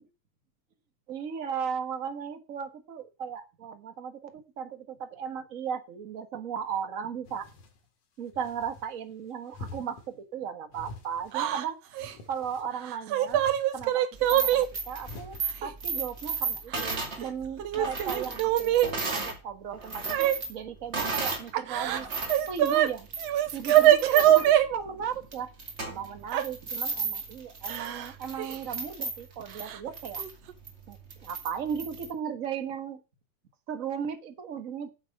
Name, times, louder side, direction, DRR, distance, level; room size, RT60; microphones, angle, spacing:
voice 1, 1.1-7.5 8.2-11.8 12.3-13.4 13.7-22.1 22.5-23.1 23.5-25.5 25.8-30.2 30.9-33.0 33.7-34.9, right 7 dB, 40° right, 8 dB, 1.2 m, -36 dB
sound 1, 7.2-7.8 8.3-8.9 9.5-10.1 10.7-11.4 11.9-12.8 13.3-13.9 14.9-15.4, left 3 dB, 90° left, 3.5 m, -46 dB
Yell / Crying sobbing, 11.3-11.6 11.9-12.1 12.9-14.7 15.6-15.7 16.7-17.3 17.6-18.9 20.1-20.4 21.5-22.9 23.2-24.7 26.3-26.4 27.7-28.1 28.4-28.5 29.7-29.8 30.2-30.5, right 12 dB, 65° right, 1.9 m, -23 dB
sound 2, 14.1-19.4 19.7-21.5 21.9-32.1, right 4 dB, 25° right, 2.1 m, -35 dB
8.9 x 8.1 x 6.5 m, 0.30 s
omnidirectional pair, 3.4 m